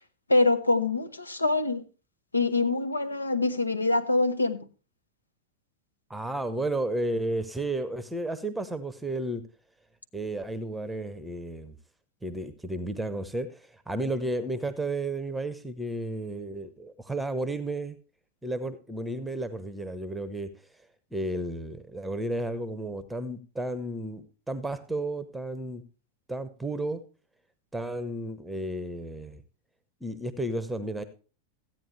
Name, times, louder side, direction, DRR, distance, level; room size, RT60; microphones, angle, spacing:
voice 1, 0.3-1.8 2.3-4.7, left 2 dB, 80° left, 0.7 m, -25 dB
voice 2, 6.1-9.4 10.1-11.7 12.2-18.0 18.4-20.5 21.1-25.8 26.3-27.0 27.7-29.4 30.0-31.0, right 1 dB, 5° right, 0.8 m, -32 dB
14.0 x 9.0 x 3.2 m
figure-of-eight pair, 90°, 0 cm